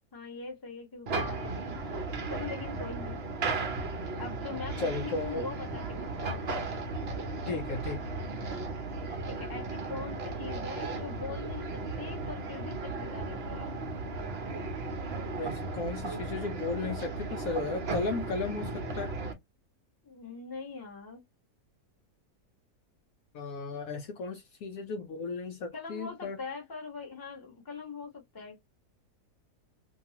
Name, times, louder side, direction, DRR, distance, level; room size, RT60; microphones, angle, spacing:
voice 1, 0.1-1.8 2.3-3.2 4.2-6.4 9.3-13.7 20.0-21.2 25.7-28.6, left 4 dB, 15° left, 0.8 m, -42 dB
sound 1, 1.1-19.3, right 3 dB, 50° right, 0.8 m, -35 dB
voice 2, 4.8-5.4 7.5-8.1 15.4-19.1 23.3-26.4, left 3 dB, 70° left, 0.9 m, -35 dB
2.7 x 2.3 x 2.8 m
omnidirectional pair, 1.7 m